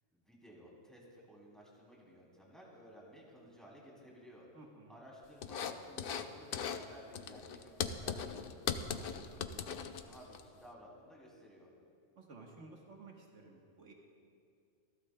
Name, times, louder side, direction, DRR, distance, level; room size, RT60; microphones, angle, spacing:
voice 1, 0.1-4.5 4.9-11.7, equal, ahead, -4 dB, 2.8 m, -56 dB
voice 2, 4.5-5.0 12.2-13.9, right 3 dB, 75° right, 0 dB, 1.5 m, -54 dB
sound 1, 5.4-6.3 6.5-6.8 7.1-10.4, left 7 dB, 60° left, 0.7 m, -39 dB
26.5 x 12.0 x 2.2 m, 2.4 s
omnidirectional pair, 1.3 m